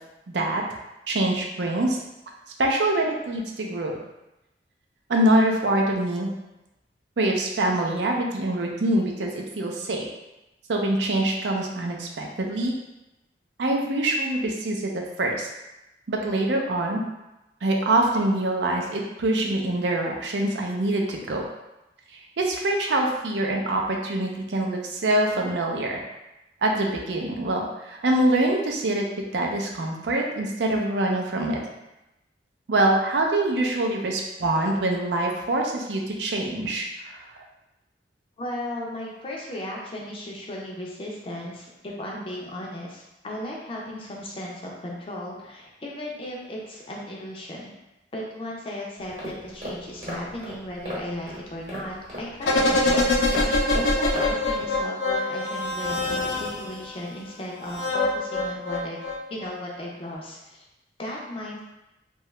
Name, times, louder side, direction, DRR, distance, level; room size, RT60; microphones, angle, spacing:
voice 1, 0.3-0.6 1.1-2.0 2.6-4.0 5.1-6.3 7.2-10.1 10.7-12.7 13.6-14.9 15.2-15.5 16.1-17.0 17.6-21.4 22.4-26.0 26.6-29.1 29.3-31.6 32.7-37.3, right 1 dB, 75° right, 1 dB, 0.5 m, -24 dB
voice 2, 38.4-47.7 48.1-53.0 53.4-59.0 59.3-60.7 61.0-61.6, left 1 dB, 30° left, -3 dB, 0.4 m, -36 dB
sound 1, 49.0-54.7, equal, 40° right, 1.0 m, -37 dB
sound 2, 52.4-56.8 57.6-59.5 59.8-59.9, left 2 dB, 85° left, 0.5 m, -24 dB
2.8 x 2.3 x 3.1 m, 0.95 s
head